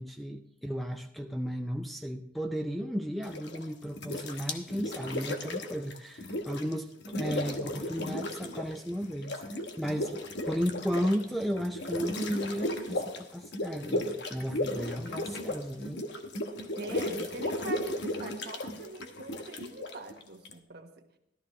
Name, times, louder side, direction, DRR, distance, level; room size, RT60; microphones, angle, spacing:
voice 1, 0.0-16.0, equal, ahead, 5 dB, 0.4 m, -34 dB
sound 1, 3.2-3.6 4.0-6.7 7.0-8.8 9.0-20.5, left 1 dB, 60° left, 1.1 m, -35 dB
voice 2, 16.7-20.9, right 2 dB, 55° right, 4 dB, 1.3 m, -43 dB
13.5 x 12.5 x 3.2 m, 0.80 s
head